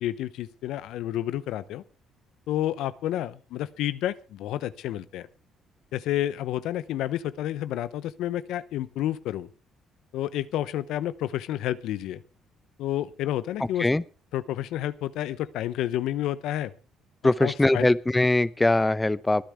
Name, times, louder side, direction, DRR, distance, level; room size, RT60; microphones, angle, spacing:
voice 1, 0.0-1.8 2.5-5.3 5.9-9.5 10.1-12.2 12.8-13.9 14.3-16.7 17.4-17.9, left 13 dB, 80° left, 0.7 m, -30 dB
voice 2, 17.2-19.4, left 2 dB, 15° left, 0.8 m, -22 dB
25.5 x 10.0 x 3.5 m
supercardioid pair, 60°, 0 cm